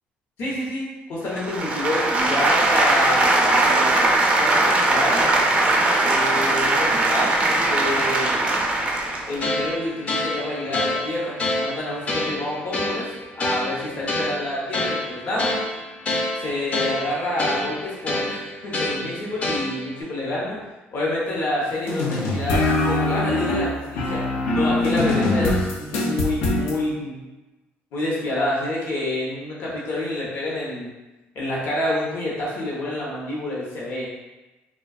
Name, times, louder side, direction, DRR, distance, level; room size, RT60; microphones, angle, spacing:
voice 1, 0.4-4.1 4.4-5.3 6.0-8.4 9.3-15.6 16.4-20.6 20.9-24.2 24.5-27.2 27.9-30.9 31.3-34.1, left 1 dB, 60° left, -6 dB, 0.8 m, -28 dB
sound 1, 1.3-9.4, right 2 dB, 30° right, 0.3 m, -20 dB
sound 2, 9.4-20.0, left 2 dB, 35° left, 0.4 m, -28 dB
sound 3, 21.9-26.8, left 2 dB, 85° left, 0.5 m, -22 dB
2.6 x 2.2 x 2.3 m, 1.1 s
cardioid pair, 130°, 4 cm